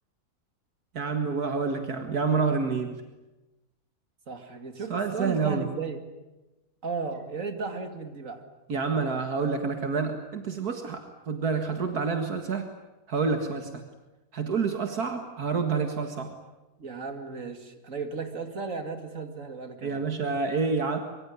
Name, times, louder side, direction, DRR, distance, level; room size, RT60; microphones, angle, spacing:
voice 1, 0.9-3.0 4.9-5.7 8.7-12.7 13.1-13.8 14.3-16.4 19.8-21.0, right 5 dB, 75° right, 5 dB, 2.4 m, -28 dB
voice 2, 4.3-6.0 6.8-8.4 16.8-20.0, right 4 dB, 55° right, 6 dB, 3.0 m, -35 dB
24.5 x 24.0 x 9.7 m, 1.1 s
omnidirectional pair, 1.6 m